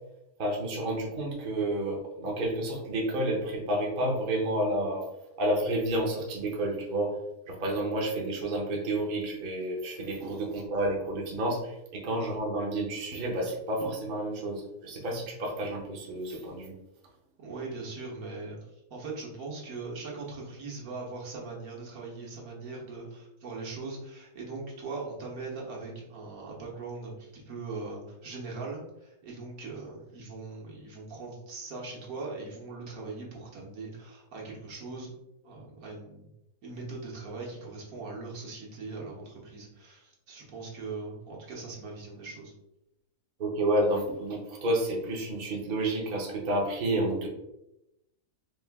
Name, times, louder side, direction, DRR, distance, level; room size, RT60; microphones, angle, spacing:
voice 1, 0.4-5.1 5.4-7.1 7.5-16.8 43.4-47.3, right 1 dB, 40° right, -2 dB, 0.8 m, -30 dB
voice 2, 17.4-18.6 18.9-35.1 35.4-36.3 36.6-42.5, right 3 dB, 70° right, -3 dB, 1.5 m, -40 dB
4.8 x 2.4 x 3.4 m, 0.88 s
omnidirectional pair, 1.6 m